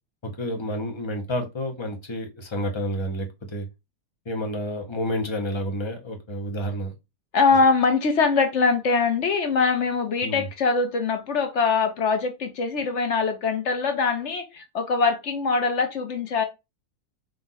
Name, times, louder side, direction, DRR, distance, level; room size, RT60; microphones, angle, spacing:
voice 1, 0.2-3.7 4.2-6.9 10.2-10.5, equal, 25° left, 0.8 m, -30 dB
voice 2, 7.3-16.4, left 4 dB, 55° left, 0.9 m, -23 dB
4.3 x 2.5 x 3.8 m
omnidirectional pair, 1.7 m